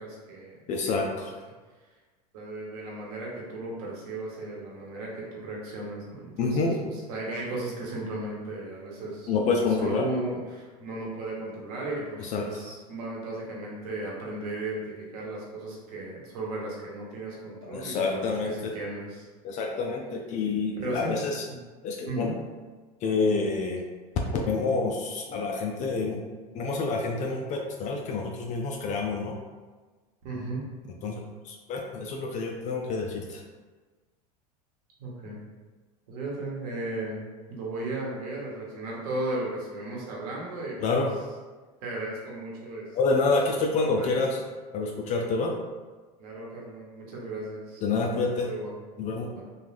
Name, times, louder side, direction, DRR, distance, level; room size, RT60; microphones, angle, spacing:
voice 1, 0.0-0.5 0.9-1.3 2.3-9.3 9.6-19.3 20.8-21.1 21.5-21.6 22.1-22.3 30.2-30.7 35.0-35.4 36.1-37.2 37.5-41.1 41.8-43.2 43.7-44.2 46.2-48.7 49.3-49.4, right 2 dB, 75° right, -3 dB, 1.0 m, -36 dB
voice 2, 0.7-1.3 6.4-6.8 9.3-10.1 12.2-12.5 17.7-18.8 19.4-21.4 21.8-22.3 23.0-23.8 24.3-26.2 26.5-29.3 31.0-33.4 40.8-41.1 43.0-44.4 44.7-45.6 47.8-48.5 49.0-49.3, left 3 dB, 40° left, 1 dB, 0.4 m, -28 dB
3.1 x 2.3 x 2.5 m, 1.3 s
hypercardioid pair, 105°, 20 cm